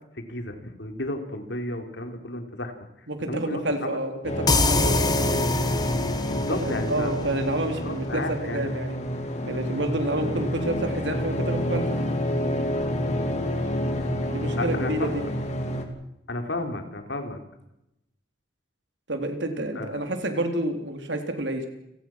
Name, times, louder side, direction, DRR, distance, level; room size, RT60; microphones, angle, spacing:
voice 1, 0.1-4.0 6.3-7.1 7.8-8.8 14.6-15.3 16.3-17.4 19.7-20.1, left 2 dB, 80° left, 5 dB, 3.5 m, -33 dB
voice 2, 3.1-5.5 6.6-9.0 9.4-12.0 14.3-15.2 19.1-21.7, right 1 dB, 85° right, 5 dB, 3.8 m, -29 dB
sound 1, 4.2-15.9, left 1 dB, 40° left, 3.1 m, -28 dB
sound 2, 4.5-8.0, left 2 dB, 20° left, 1.8 m, -26 dB
29.5 x 18.0 x 6.1 m, 0.86 s
head